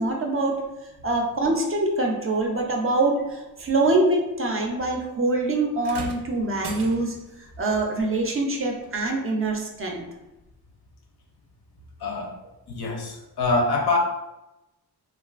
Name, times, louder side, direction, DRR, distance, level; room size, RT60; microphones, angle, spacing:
voice 1, 0.0-10.0, right 2 dB, 35° right, 1 dB, 0.4 m, -24 dB
sound 1, 5.8-7.4 8.8-9.0 9.9-10.0, right 5 dB, 90° right, 0.5 m, -37 dB
voice 2, 12.0-12.4 12.7-14.0, left 3 dB, 75° left, 2 dB, 0.7 m, -25 dB
3.1 x 2.4 x 2.3 m, 0.94 s
wide cardioid pair, 150°, 39 cm